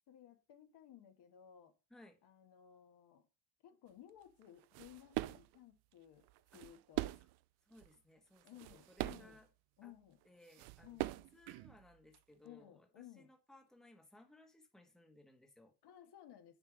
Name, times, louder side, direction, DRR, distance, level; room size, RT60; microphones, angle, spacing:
voice 1, 0.1-1.7 2.2-3.2 3.6-6.3 6.5-7.1 8.4-9.4 9.8-10.2 10.8-11.3 12.4-13.3 15.8-16.6, left 11 dB, 55° left, 1.5 m, -58 dB
sound 1, 4.4-5.6 6.2-7.4 7.8-7.9 8.4-9.4 10.2-10.3 10.5-12.2, right 18 dB, 55° right, 0.5 m, -42 dB
voice 2, 7.6-9.5 9.8-9.9 10.2-15.7, left 1 dB, ahead, 1.4 m, -63 dB
6.7 x 4.6 x 5.1 m
supercardioid pair, 105°, 48 cm